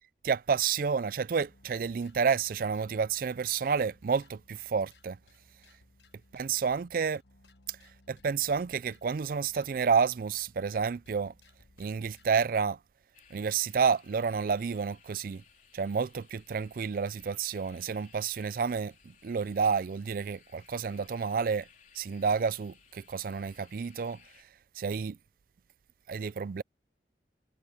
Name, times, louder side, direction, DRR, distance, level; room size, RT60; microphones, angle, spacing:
voice 1, 0.2-5.2 6.3-7.2 8.1-11.3 11.8-12.8 13.3-15.4 15.7-21.7 21.9-24.2 24.8-25.2 26.1-26.6, right 6 dB, 50° right, 0.4 m, -30 dB
sound 1, 1.3-12.3, left 2 dB, 80° left, 1.4 m, -62 dB
sound 2, 13.1-24.4, left 7 dB, 45° left, 4.0 m, -61 dB
head